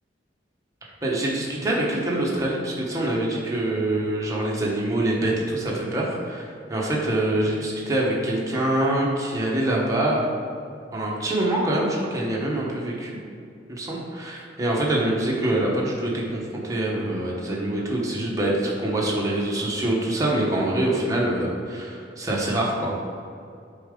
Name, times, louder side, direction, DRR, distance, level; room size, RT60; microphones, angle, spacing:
voice 1, 1.0-10.3 10.9-13.2 13.8-22.9, right 1 dB, 20° right, -4 dB, 1.1 m, -25 dB
6.8 x 4.6 x 3.8 m, 2.4 s
head